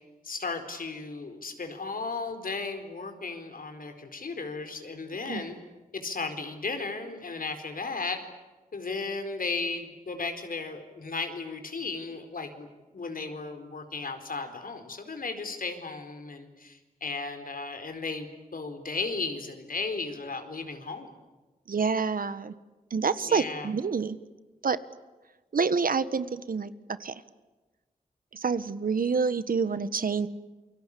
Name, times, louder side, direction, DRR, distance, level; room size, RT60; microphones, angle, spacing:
voice 1, 0.2-5.6 5.9-8.2 8.7-12.7 12.9-21.1 23.2-23.7, left 4 dB, 70° left, 7 dB, 4.4 m, -35 dB
voice 2, 21.7-22.5 22.9-24.2 24.6-24.8 25.5-27.2 28.3-30.3, right 5 dB, 75° right, 14 dB, 1.4 m, -27 dB
29.0 x 23.5 x 8.5 m, 1.2 s
wide cardioid pair, 75°, 15 cm